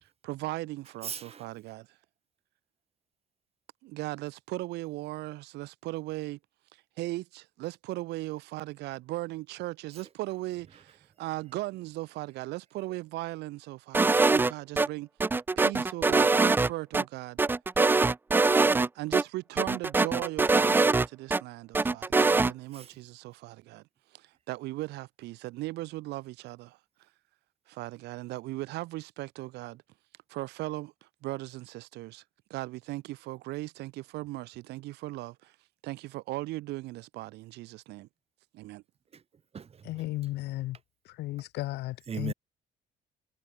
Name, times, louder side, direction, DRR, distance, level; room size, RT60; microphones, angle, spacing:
voice 1, 0.0-2.0 3.8-6.4 6.7-15.1 15.6-17.4 18.4-23.8 24.1-26.8 27.7-29.8 30.3-30.9 31.2-32.2 32.5-35.6 35.8-38.1 38.5-38.8, right 18 dB, 85° right, 2.3 m, -38 dB
voice 2, 1.0-1.5 22.7-22.9 39.1-39.2 39.5-40.0 42.1-42.3, right 7 dB, 35° right, 2.6 m, -38 dB
sound 1, 13.9-14.9 15.2-17.0 17.4-18.9 19.1-19.2 19.6-21.4 21.7-22.5, right 3 dB, 10° right, 0.3 m, -23 dB
voice 3, 39.9-40.8 41.2-42.3, left 17 dB, 80° left, 2.1 m, -34 dB
cardioid pair, 110°, 17 cm